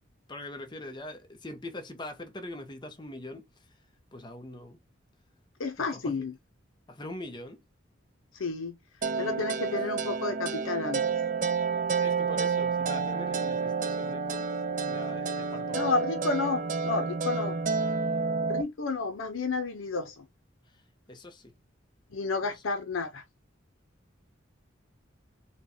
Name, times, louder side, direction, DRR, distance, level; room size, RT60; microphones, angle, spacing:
voice 1, 0.3-3.7 4.1-4.8 5.8-6.3 6.9-7.6 9.3-9.7 11.9-14.5 14.9-15.9 20.7-20.8 21.1-21.5 22.4-22.6, left 1 dB, 25° left, 0.7 m, -43 dB
voice 2, 5.6-6.3 8.3-8.8 9.2-11.1 15.7-17.6 18.4-20.3 22.1-23.2, left 3 dB, 90° left, 0.7 m, -31 dB
sound 1, 9.0-18.6, right 5 dB, 40° right, 0.4 m, -29 dB
4.4 x 2.2 x 2.7 m
head